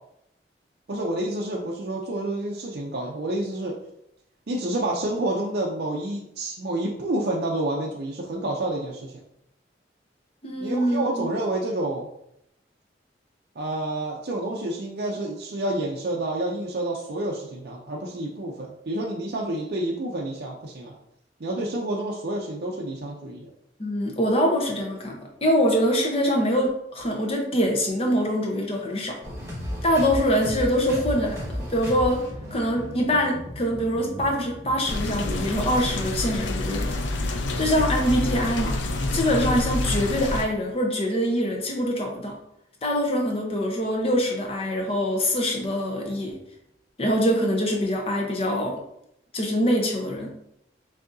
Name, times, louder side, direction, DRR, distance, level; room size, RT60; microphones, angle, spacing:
voice 1, 0.9-3.8 4.5-9.1 10.6-12.1 13.6-21.0 21.4-23.5, right 1 dB, 60° right, -2 dB, 0.5 m, -29 dB
voice 2, 10.4-11.3 23.8-29.2 29.8-32.2 32.5-37.0 37.6-38.8 39.1-42.4 42.8-46.4 47.0-48.8 49.3-50.4, equal, 30° left, 1 dB, 0.8 m, -24 dB
sound 1, 29.2-36.7, equal, 15° right, 1.1 m, -35 dB
sound 2, 34.8-40.4, left 2 dB, 85° left, 0.5 m, -27 dB
6.1 x 2.7 x 2.6 m, 0.77 s
head